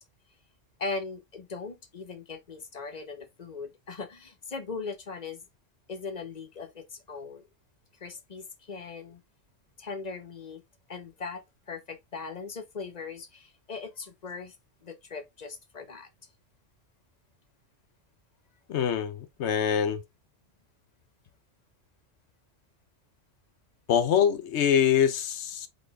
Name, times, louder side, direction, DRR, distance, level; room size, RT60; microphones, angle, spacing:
voice 1, 0.8-5.4 5.9-7.4 8.0-9.2 9.8-10.6 10.9-14.5 14.8-16.1, left 4 dB, 40° left, 0.8 m, -39 dB
voice 2, 18.7-20.0 23.9-25.7, left 8 dB, 70° left, 1.0 m, -24 dB
4.9 x 4.2 x 2.3 m
omnidirectional pair, 1.2 m